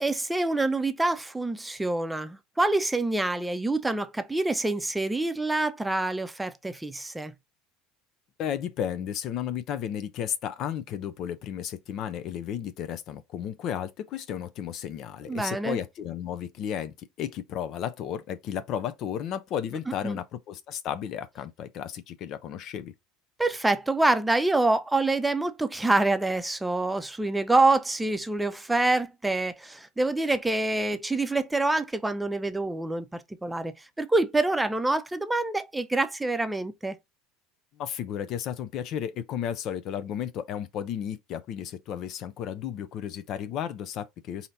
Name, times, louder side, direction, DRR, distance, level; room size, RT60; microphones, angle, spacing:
voice 1, 0.0-7.3 15.3-15.8 20.0-20.2 23.4-37.0, right 2 dB, 10° right, 0.7 m, -26 dB
voice 2, 8.4-22.9 37.8-44.5, left 9 dB, 55° left, 0.5 m, -33 dB
4.2 x 2.8 x 4.0 m
hypercardioid pair, 70°, 0 cm